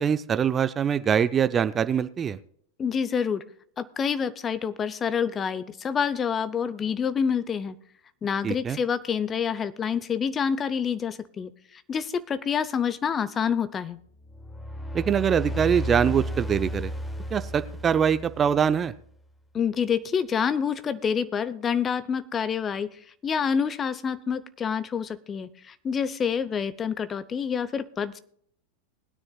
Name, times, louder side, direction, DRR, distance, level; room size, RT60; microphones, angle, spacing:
voice 1, 0.0-2.4 8.4-8.8 14.9-16.9 17.3-18.9, right 8 dB, 25° right, 13 dB, 0.5 m, -23 dB
voice 2, 2.8-3.4 3.8-7.8 8.2-14.0 19.5-22.9 23.2-28.2, left 7 dB, 25° left, 16 dB, 0.7 m, -27 dB
sound 1, 14.2-18.9, equal, 10° left, 1.0 m, -33 dB
20.5 x 9.7 x 2.3 m, 0.63 s
hypercardioid pair, 95°, 0 cm